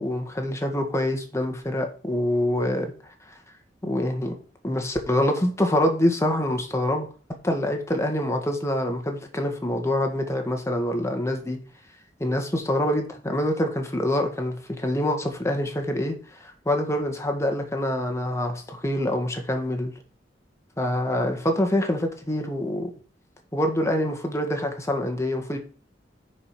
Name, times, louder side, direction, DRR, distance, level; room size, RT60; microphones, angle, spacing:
voice 1, 0.0-2.9 3.3-3.4 3.8-4.4 4.6-7.1 7.4-11.6 12.2-19.9 20.8-22.9 23.5-25.6, left 1 dB, 15° left, 1.8 m, -25 dB
9.5 x 5.1 x 6.0 m
head